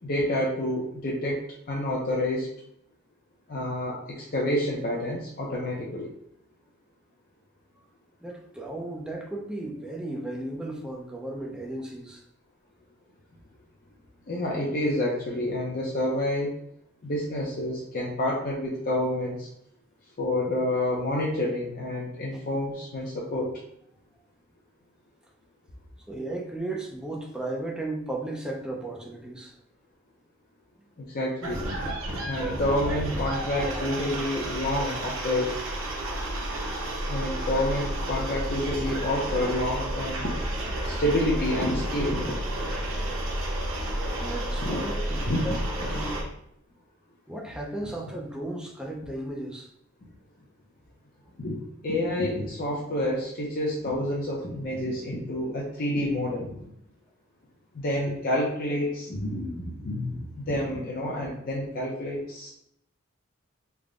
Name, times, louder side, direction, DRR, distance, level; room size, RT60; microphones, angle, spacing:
voice 1, 0.0-2.5 3.5-6.1 14.3-16.6 17.0-19.5 20.2-23.5 31.0-31.6 32.2-35.5 37.1-40.3 40.8-42.4 44.6-44.8 45.3-45.9 51.4-51.6 51.8-56.7 57.7-62.5, left 1 dB, 45° left, -3 dB, 0.6 m, -28 dB
voice 2, 8.2-12.2 26.1-29.5 44.2-45.5 45.8-46.1 47.3-49.7, right 1 dB, 5° right, -1 dB, 0.5 m, -35 dB
sound 1, 31.4-46.2, right 1 dB, 90° right, 0.9 m, -31 dB
3.4 x 2.1 x 3.7 m, 0.72 s
head